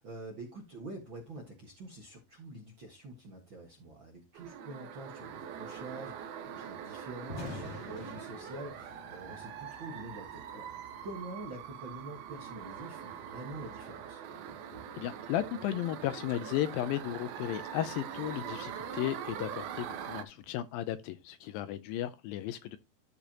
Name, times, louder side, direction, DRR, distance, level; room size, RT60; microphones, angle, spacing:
voice 1, 0.0-10.7 11.0-14.2, right 2 dB, 55° right, 1.4 m, -46 dB
sound 1, 4.3-20.2, right 8 dB, 75° right, 2.7 m, -43 dB
Thunder, 7.1-21.3, left 1 dB, 35° left, 2.4 m, -53 dB
voice 2, 15.0-22.8, left 13 dB, 80° left, 2.2 m, -35 dB
13.5 x 5.0 x 2.9 m
omnidirectional pair, 4.5 m